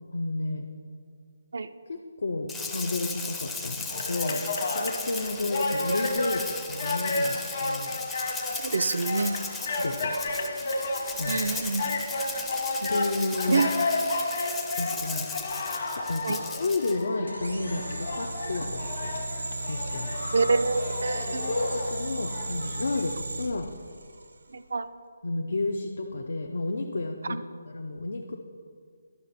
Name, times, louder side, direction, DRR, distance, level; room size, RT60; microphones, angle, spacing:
voice 1, 0.1-0.7 1.9-4.4 4.7-8.0 9.8-10.1 11.2-11.4 12.8-13.6 14.8-15.3 15.8-19.2 19.7-20.4 21.3-23.7 25.2-28.4, left 2 dB, 70° left, 3 dB, 0.6 m, -31 dB
Rattle (instrument), 2.5-17.0, left 4 dB, 5° left, 0.5 m, -37 dB
sound 1, 3.9-23.1, left 2 dB, 55° left, 1.2 m, -32 dB
voice 2, 8.6-9.4 11.3-11.9 13.5-13.7 16.2-16.4 20.3-21.5 24.5-24.9, right 4 dB, 70° right, 10 dB, 0.4 m, -26 dB
sound 2, 17.3-24.4, right 2 dB, 90° right, 0.8 m, -35 dB
11.5 x 5.9 x 4.1 m, 2.1 s
hypercardioid pair, 165°, 0 cm